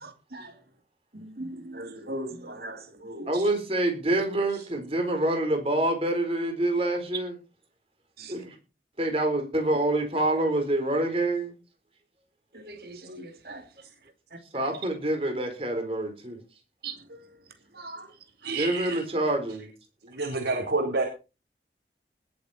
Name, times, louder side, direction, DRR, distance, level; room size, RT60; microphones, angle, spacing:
voice 1, 0.0-0.5 1.4-3.3 8.2-8.3 12.5-13.6 16.8-17.3 17.8-18.1, right 1 dB, 60° right, 2.8 m, -39 dB
voice 2, 3.3-7.4 8.3-8.5 9.0-11.5 14.5-16.4 18.6-19.7, right 1 dB, 35° right, 4.3 m, -26 dB
voice 3, 18.4-19.0 20.0-21.0, right 3 dB, 90° right, 4.0 m, -29 dB
20.0 x 8.5 x 4.4 m
head